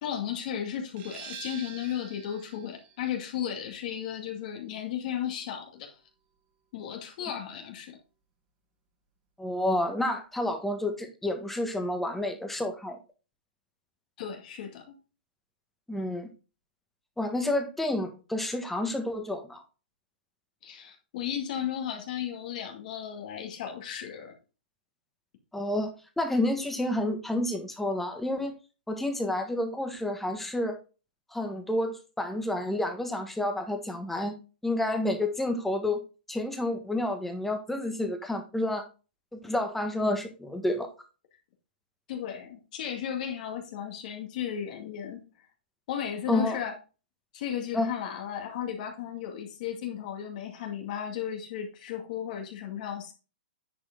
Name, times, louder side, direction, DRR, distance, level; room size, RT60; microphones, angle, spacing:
voice 1, 0.0-6.0 6.7-8.0 14.2-15.0 20.6-24.3 42.1-45.2 45.9-46.7 47.3-53.1, left 9 dB, 50° left, 2 dB, 2.3 m, -35 dB
sound 1, 1.0-6.4, right 6 dB, 35° right, 1.9 m, -48 dB
voice 2, 9.4-13.0 15.9-16.3 17.2-19.6 25.5-28.5 28.9-30.8 31.3-34.3 34.6-36.0 36.3-38.8 39.3-40.9 46.3-46.6 47.7-47.9, left 1 dB, 5° left, 5 dB, 1.4 m, -29 dB
10.0 x 4.9 x 3.8 m, 0.32 s
hypercardioid pair, 135°, 5 cm